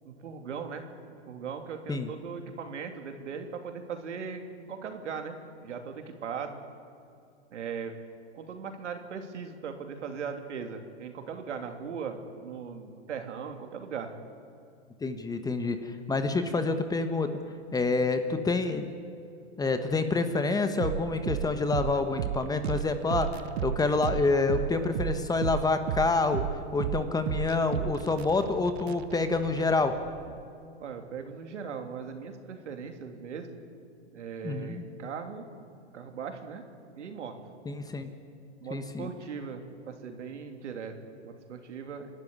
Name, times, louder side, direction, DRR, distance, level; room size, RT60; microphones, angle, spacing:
voice 1, 0.0-0.8 1.3-6.6 7.5-7.9 8.3-14.1 30.8-33.6 34.1-35.4 35.9-36.6 36.9-37.4 38.6-40.9 41.2-42.1, right 6 dB, 80° right, 5 dB, 3.1 m, -39 dB
voice 2, 15.0-17.3 17.7-18.9 19.6-23.3 23.6-26.4 26.7-29.9 34.4-34.8 37.6-38.1 38.7-39.1, left 3 dB, 10° left, 9 dB, 1.3 m, -27 dB
sound 1, 20.8-30.4, right 10 dB, 60° right, 1.3 m, -34 dB
29.0 x 12.5 x 9.7 m, 2.6 s
hypercardioid pair, 125°, 35 cm